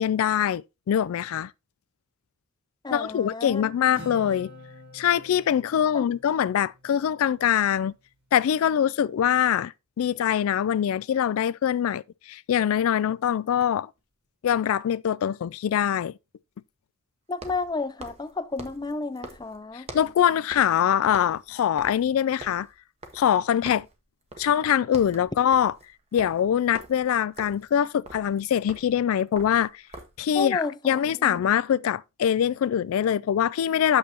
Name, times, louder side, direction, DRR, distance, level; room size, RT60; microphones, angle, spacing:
voice 1, 0.0-1.5 2.9-4.5 4.9-7.9 8.3-12.0 12.3-13.9 14.4-16.1 19.9-22.7 23.1-23.9 24.4-25.7 26.1-29.7 30.2-34.0, left 9 dB, 70° left, 0.3 m, -23 dB
voice 2, 2.8-3.7 5.9-6.1 17.3-19.9 30.3-31.5, left 3 dB, 20° left, 0.6 m, -32 dB
Acoustic guitar, 3.9-7.6, left 1 dB, 65° right, 3.7 m, -46 dB
sound 1, 14.0-14.1 17.3-20.2 20.5-20.8 21.1-23.4 23.7-24.0 24.3-24.6 24.8-30.3, right 2 dB, 30° right, 1.1 m, -45 dB
8.8 x 6.7 x 2.9 m
head